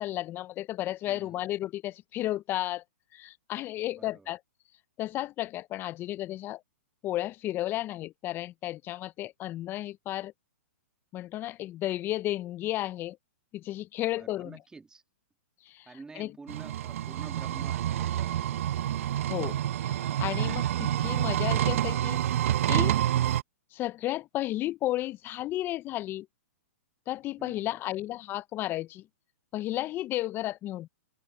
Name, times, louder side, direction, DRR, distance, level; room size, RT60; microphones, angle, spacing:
voice 1, 0.0-2.8 3.1-4.4 5.0-6.6 7.0-10.3 11.1-13.2 13.5-14.6 15.6-15.9 16.2-16.3 19.3-22.4 22.7-23.0 23.7-26.3 27.1-29.1 29.5-30.9, left 15 dB, 25° left, 0.6 m, -33 dB
voice 2, 1.1-1.4 3.9-4.3 14.0-15.0 15.9-18.6 27.4-27.8, right 4 dB, 10° right, 1.9 m, -49 dB
sound 1, 16.5-23.4, right 11 dB, 60° right, 0.7 m, -28 dB
hypercardioid pair, 130°, 8 cm